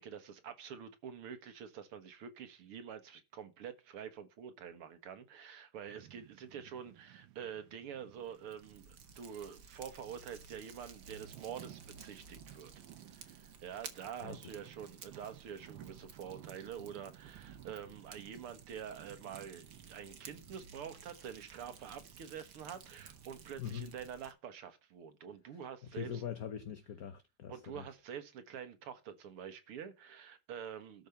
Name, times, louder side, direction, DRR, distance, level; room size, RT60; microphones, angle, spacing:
voice 1, 0.0-12.7 13.1-26.2 27.5-31.1, right 8 dB, 85° right, 2.4 m, -47 dB
sound 1, 5.9-24.1, right 13 dB, 70° right, 1.4 m, -57 dB
Fire, 8.1-24.3, right 5 dB, 55° right, 2.0 m, -55 dB
voice 2, 14.2-14.6 23.6-23.9 25.9-27.8, left 9 dB, 55° left, 1.2 m, -42 dB
12.5 x 5.2 x 6.9 m
omnidirectional pair, 2.4 m